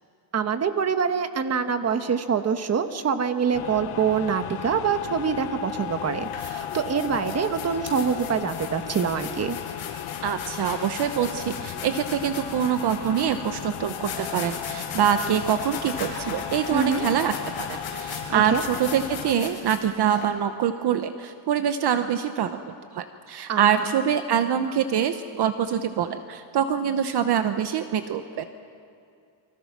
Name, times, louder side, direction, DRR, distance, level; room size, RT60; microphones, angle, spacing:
voice 1, 0.3-9.6 16.7-17.1 18.3-18.6 23.5-23.6, right 6 dB, 30° right, 8 dB, 1.3 m, -25 dB
sound 1, 3.5-19.3, left 11 dB, 90° left, 1.0 m, -36 dB
sound 2, 5.4-5.6 6.1-20.2, left 5 dB, 50° left, 7.3 m, -38 dB
voice 2, 10.2-17.3 17.6-22.6 22.9-28.5, right 8 dB, 55° right, 9 dB, 1.0 m, -25 dB
29.0 x 25.0 x 6.1 m, 2.5 s
cardioid pair, 150°, 48 cm